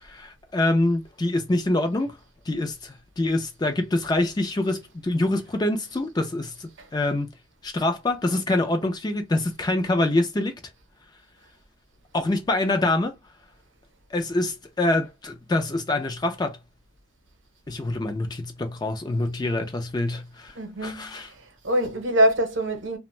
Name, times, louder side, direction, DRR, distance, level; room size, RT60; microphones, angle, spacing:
voice 1, 0.0-2.2 2.5-7.3 7.6-10.6 12.1-13.1 14.1-16.6 17.7-20.5 20.8-21.3, left 2 dB, 20° left, 0.3 m, -25 dB
voice 2, 20.5-23.0, right 1 dB, 65° right, 0.8 m, -24 dB
2.5 x 2.1 x 3.0 m
head